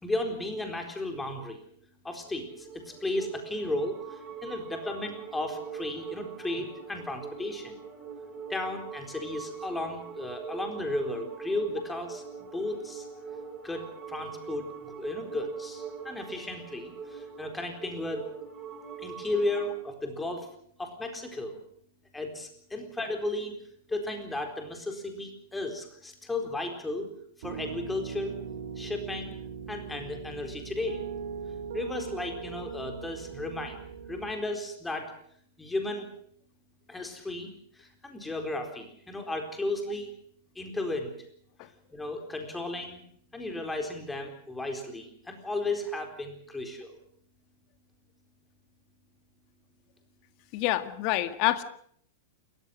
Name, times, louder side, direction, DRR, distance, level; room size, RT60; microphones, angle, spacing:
voice 1, 0.0-1.6 2.0-7.8 8.5-12.2 12.5-13.1 13.6-18.3 19.0-20.5 20.8-21.6 22.1-23.5 23.9-27.1 27.4-28.3 28.8-29.4 29.7-31.1 31.7-33.8 34.1-35.1 35.6-36.1 36.9-40.1 40.6-41.1 41.9-43.0 43.3-46.9, left 2 dB, 10° left, 5 dB, 4.2 m, -34 dB
sound 1, 2.2-19.8, right 6 dB, 25° right, 5.4 m, -43 dB
Piano, 27.4-34.3, right 6 dB, 60° right, 3.3 m, -40 dB
voice 2, 50.5-51.6, left 15 dB, 45° left, 11 dB, 1.8 m, -27 dB
29.0 x 14.5 x 7.7 m, 0.63 s
hypercardioid pair, 100°, 0 cm